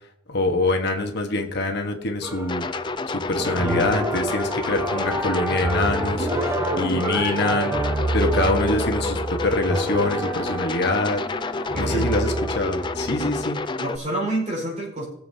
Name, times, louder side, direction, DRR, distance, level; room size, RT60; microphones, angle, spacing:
voice 1, 0.3-2.7 3.1-11.2 11.5-13.6, left 2 dB, 55° left, 3 dB, 1.3 m, -25 dB
sound 1, 2.2-3.0 3.4-13.4, right 2 dB, 15° right, 1.0 m, -28 dB
sound 2, 2.5-14.0, left 3 dB, 25° left, 0.4 m, -29 dB
voice 2, 11.7-12.1 13.2-13.3 13.8-15.1, right 1 dB, 35° right, -2 dB, 4.8 m, -28 dB
20.5 x 7.3 x 2.8 m, 0.78 s
head